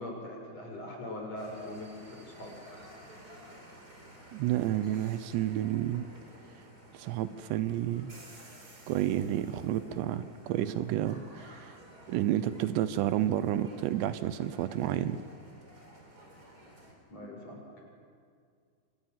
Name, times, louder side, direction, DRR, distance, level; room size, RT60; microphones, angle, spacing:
voice 1, 0.0-2.5 17.1-17.6, left 1 dB, 35° left, 1 dB, 6.2 m, -41 dB
sound 1, 1.4-16.9, right 1 dB, 25° right, 4.1 m, -53 dB
voice 2, 4.3-6.0 6.9-8.1 8.9-11.8 12.1-15.2, right 12 dB, 80° right, 13 dB, 2.9 m, -30 dB
29.0 x 25.5 x 7.4 m, 2.2 s
omnidirectional pair, 5.1 m